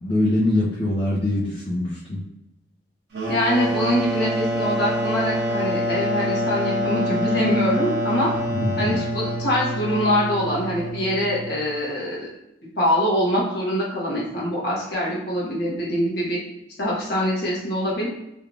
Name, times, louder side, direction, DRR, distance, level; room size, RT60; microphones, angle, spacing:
voice 1, 0.0-2.2 8.5-9.0, left 1 dB, 30° left, -8 dB, 0.7 m, -23 dB
sound 1, 3.1-11.6, equal, 55° right, 0.9 m, -26 dB
voice 2, 3.3-8.3 8.8-12.3 12.8-16.4 16.8-18.1, equal, 55° left, -6 dB, 1.3 m, -24 dB
3.3 x 3.3 x 2.4 m, 0.89 s
head